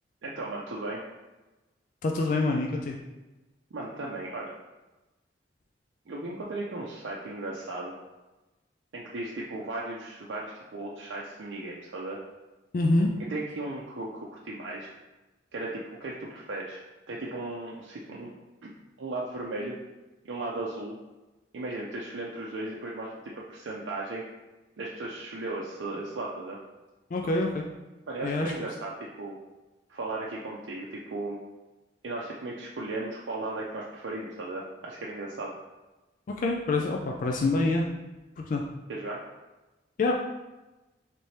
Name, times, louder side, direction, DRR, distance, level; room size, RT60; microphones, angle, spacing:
voice 1, 0.2-1.0 3.7-4.5 6.1-7.9 8.9-12.2 13.3-14.9 15.5-16.8 17.1-18.3 18.6-18.7 19.0-19.7 20.2-21.0 21.5-24.2 24.8-26.6 28.1-29.4 29.9-31.4 32.0-35.5 38.9-39.2, right 2 dB, 85° right, -4 dB, 0.5 m, -36 dB
voice 2, 2.0-3.0 12.7-13.1 27.1-27.7 28.2-28.5 36.3-37.9 38.4-38.6 40.0-40.1, left 2 dB, 45° left, 1 dB, 0.3 m, -26 dB
3.3 x 3.2 x 4.1 m, 1.1 s
head